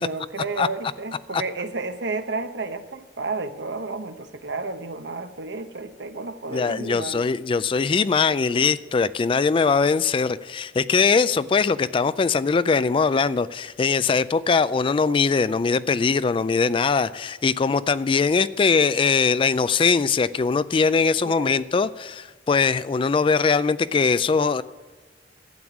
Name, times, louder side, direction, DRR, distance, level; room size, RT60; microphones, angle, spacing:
voice 1, 0.0-7.3 21.2-21.6, right 3 dB, 70° right, 9 dB, 0.8 m, -32 dB
voice 2, 6.5-24.6, left 5 dB, 30° left, 16 dB, 0.3 m, -21 dB
12.0 x 8.8 x 6.0 m, 1.3 s
head